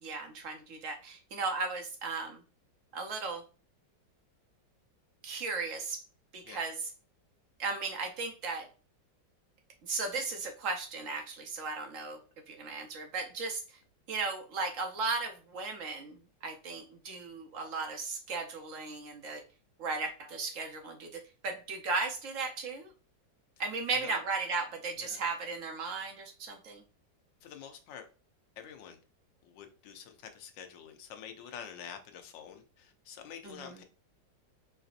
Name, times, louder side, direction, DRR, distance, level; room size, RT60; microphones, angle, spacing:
voice 1, 0.0-2.4 2.9-3.4 5.2-6.0 6.3-6.9 7.6-8.7 9.8-12.2 12.5-13.8 14.1-19.4 19.8-22.9 23.6-26.8 33.4-33.8, right 4 dB, 60° right, 0.9 m, -36 dB
voice 2, 27.4-28.1 28.6-29.0 29.4-33.8, left 8 dB, 85° left, 1.4 m, -47 dB
4.9 x 2.7 x 2.4 m
omnidirectional pair, 2.0 m